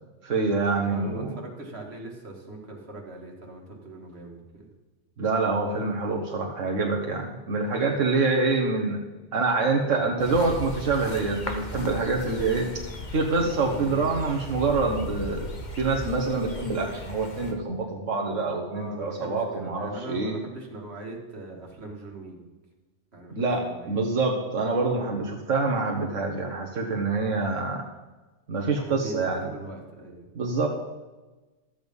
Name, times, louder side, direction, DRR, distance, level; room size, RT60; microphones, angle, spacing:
voice 1, 0.2-1.3 5.2-9.0 9.3-12.7 13.1-15.5 15.8-20.3 23.3-27.9 28.5-29.5 30.3-30.7, right 3 dB, 85° right, 0 dB, 1.6 m, -26 dB
voice 2, 0.8-4.7 13.4-14.3 18.7-22.4 23.1-24.0 28.8-30.3, right 2 dB, 60° right, -1 dB, 2.3 m, -41 dB
sound 1, 10.2-17.5, left 2 dB, 40° left, 1.3 m, -37 dB
13.5 x 8.1 x 5.4 m, 1.2 s
omnidirectional pair, 1.3 m